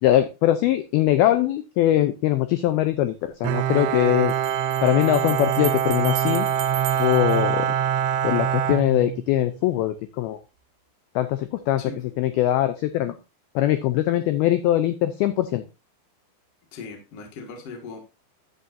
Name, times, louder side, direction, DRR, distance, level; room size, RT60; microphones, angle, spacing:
voice 1, 0.0-4.3 4.8-6.5 7.0-7.7 8.2-10.4 11.2-11.8 12.2-13.2 13.6-15.6, left 13 dB, 75° left, 10 dB, 2.4 m, -22 dB
sound 1, 2.7-2.8 4.3-8.3, right 11 dB, 65° right, 2.5 m, -37 dB
Bowed string instrument, 3.4-9.6, right 9 dB, 85° right, 2.8 m, -24 dB
voice 2, 11.8-12.1 16.7-18.0, left 4 dB, 45° left, 3 dB, 2.5 m, -38 dB
10.5 x 8.9 x 2.7 m, 0.28 s
omnidirectional pair, 4.9 m